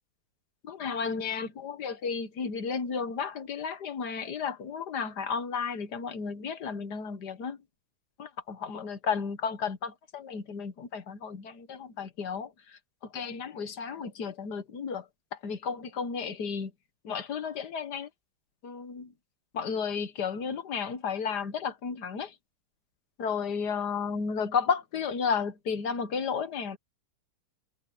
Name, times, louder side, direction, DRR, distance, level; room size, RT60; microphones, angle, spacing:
voice 1, 0.6-7.6 8.2-15.0 15.3-16.7 17.0-18.1 18.6-19.1 19.5-22.3 23.2-26.8, left 6 dB, 55° left, 1.8 m, -33 dB
omnidirectional pair, 2.2 m